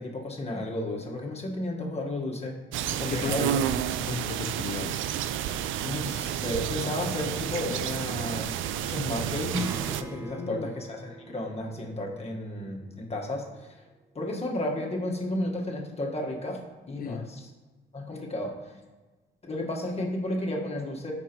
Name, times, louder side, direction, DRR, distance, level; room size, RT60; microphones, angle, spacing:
voice 1, 0.0-2.6 2.8-3.6 5.8-8.5 8.8-13.7 14.1-16.6 16.9-17.5 17.9-18.6 19.4-21.1, left 1 dB, 30° left, 0 dB, 1.4 m, -33 dB
sound 1, 2.7-10.0, right 10 dB, 80° right, 0.4 m, -30 dB
voice 2, 3.1-3.7 4.0-5.0 10.3-10.7 17.0-17.3, left 6 dB, 45° left, 11 dB, 0.5 m, -35 dB
Strum, 9.5-14.7, equal, 15° right, 0.8 m, -41 dB
12.0 x 4.6 x 3.0 m, 1.3 s
cardioid pair, 90°, 20 cm